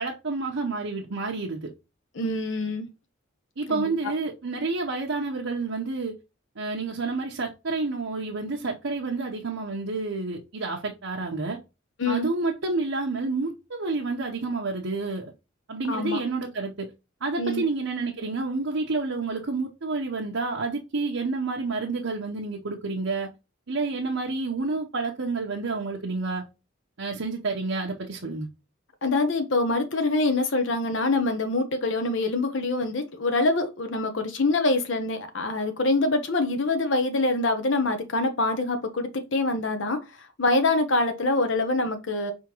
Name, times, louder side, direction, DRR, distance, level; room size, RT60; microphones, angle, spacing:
voice 1, 0.0-1.7 3.6-6.2 6.6-11.6 12.1-15.3 15.7-16.9 17.2-23.3 23.7-26.4 27.0-28.5, right 3 dB, 75° right, 0.9 m, -29 dB
voice 2, 2.2-2.9 3.7-3.9 12.0-12.3 15.9-16.2 17.4-17.6 29.0-40.0 40.4-42.3, left 2 dB, 65° left, 0.9 m, -25 dB
5.0 x 3.6 x 2.9 m
head